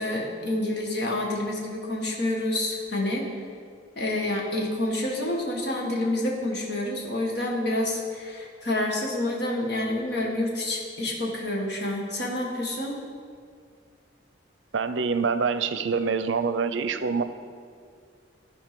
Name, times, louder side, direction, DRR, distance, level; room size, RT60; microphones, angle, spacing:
voice 1, 0.0-3.2 4.0-13.0, left 1 dB, 60° left, -1 dB, 1.8 m, -28 dB
voice 2, 14.7-17.2, right 5 dB, 80° right, 11 dB, 0.5 m, -25 dB
14.5 x 5.1 x 5.2 m, 2.1 s
head